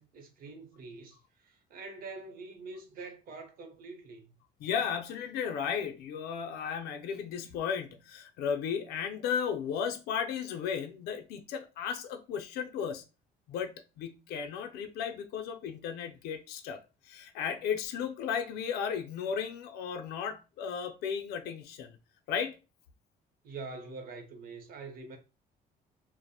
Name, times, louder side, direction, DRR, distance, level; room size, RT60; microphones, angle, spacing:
voice 1, 0.0-4.4 23.4-25.2, right 3 dB, 60° right, 0.7 m, -45 dB
voice 2, 4.6-13.0 13.5-22.0 22.3-22.6, left 7 dB, 70° left, 0.4 m, -35 dB
2.7 x 2.0 x 2.2 m
cardioid pair, 110°, 17 cm